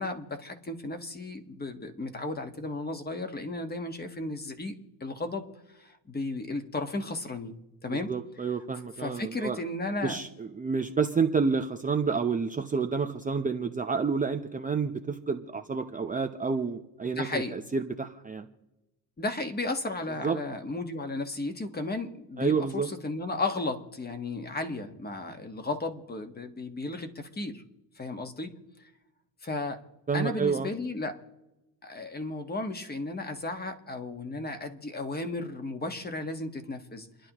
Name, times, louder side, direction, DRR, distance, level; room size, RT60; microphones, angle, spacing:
voice 1, 0.0-7.5 7.8-8.1 9.0-10.2 17.0-17.5 19.2-27.6 28.0-28.5 29.4-29.8 30.1-31.1 31.8-37.3, left 2 dB, 20° left, 6 dB, 1.4 m, -34 dB
voice 2, 8.1-9.6 10.0-18.5 20.2-20.4 22.4-22.9 30.1-30.7, right 5 dB, 15° right, 5 dB, 0.6 m, -29 dB
29.0 x 11.0 x 3.0 m, 1.0 s
cardioid pair, 120°, 49 cm